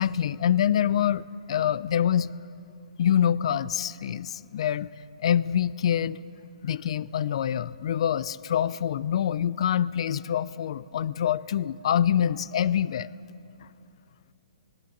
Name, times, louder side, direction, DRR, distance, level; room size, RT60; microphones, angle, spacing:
voice 1, 0.0-2.3 3.0-4.9 5.2-6.2 6.6-13.1, left 9 dB, 50° left, 20 dB, 0.5 m, -25 dB
19.0 x 19.0 x 8.5 m, 2.6 s
hypercardioid pair, 170°, 4 cm